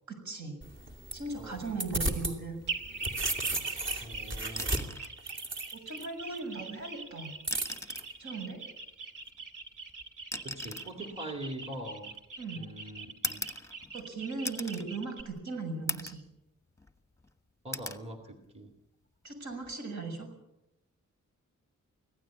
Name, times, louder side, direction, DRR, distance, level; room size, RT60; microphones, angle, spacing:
voice 1, 0.1-0.5 1.1-2.6 5.7-7.3 8.2-8.6 12.4-12.7 13.9-16.2 19.2-20.3, right 3 dB, 65° right, 5 dB, 7.0 m, -38 dB
sound 1, 0.6-2.4 2.7-6.0 7.4-8.0, right 1 dB, 40° right, 2.8 m, -34 dB
voice 2, 1.4-1.7 4.0-4.9 10.4-12.1 12.6-13.4 17.6-18.7, right 1 dB, 20° right, 3 dB, 2.2 m, -42 dB
sound 2, 2.7-15.2, right 4 dB, 85° right, 2.6 m, -42 dB
sound 3, 4.5-5.2 6.6-6.7 7.4-8.2 9.3-12.4 13.2-14.1 14.4-14.9 15.3-15.4 15.9-16.3 16.7-17.3 17.7-18.0 19.5-19.7, left 1 dB, 10° left, 1.2 m, -39 dB
25.0 x 16.5 x 8.7 m, 0.87 s
wide cardioid pair, 175°, 30 cm